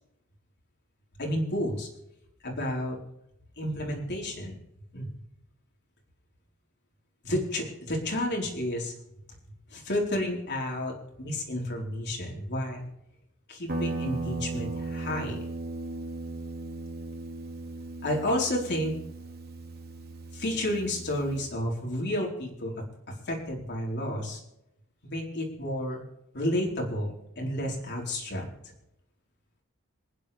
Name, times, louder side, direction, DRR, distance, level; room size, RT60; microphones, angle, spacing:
voice 1, 1.2-1.9 2.4-3.0 3.6-4.5 4.9-5.1 7.2-8.9 9.7-10.9 11.2-12.9 13.5-15.4 18.0-18.9 20.3-22.7 23.1-24.4 25.0-26.0 26.3-28.5, left 1 dB, 55° left, -1 dB, 4.4 m, -31 dB
Guitar, 13.7-21.5, right 2 dB, 50° right, 2.6 m, -37 dB
27.0 x 10.0 x 3.5 m, 0.85 s
head